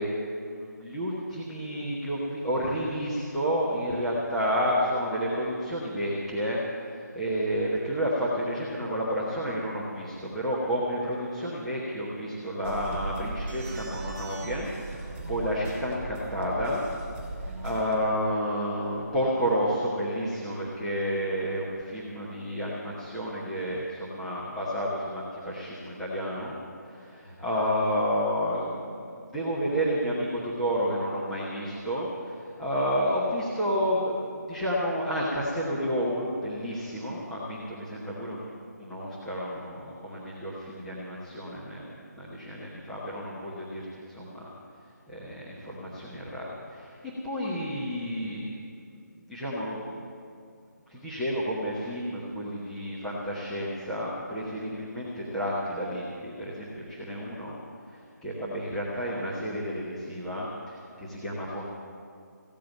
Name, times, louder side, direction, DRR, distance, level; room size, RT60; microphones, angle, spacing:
voice 1, 0.0-16.8 17.3-26.5 26.8-38.5 38.8-44.5 45.1-48.5 48.7-48.8 49.3-50.1 50.9-57.6 57.9-61.6, equal, 5° left, -10 dB, 1.0 m, -31 dB
sound 1, 12.6-18.0, right 2 dB, 30° right, 4.8 m, -37 dB
16.0 x 8.6 x 9.3 m, 2.3 s
figure-of-eight pair, 170°, 10 cm